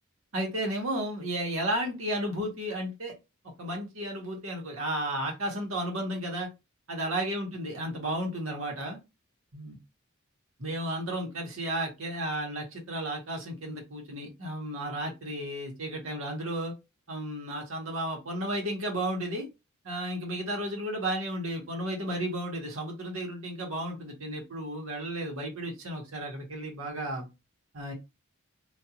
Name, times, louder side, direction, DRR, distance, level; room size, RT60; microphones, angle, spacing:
voice 1, 0.3-3.1 3.6-6.5 6.9-9.0 9.5-9.8 10.6-16.7 17.1-19.5 19.8-27.3 27.7-27.9, right 1 dB, 70° right, 0 dB, 1.2 m, -33 dB
2.5 x 2.5 x 2.8 m, 0.24 s
head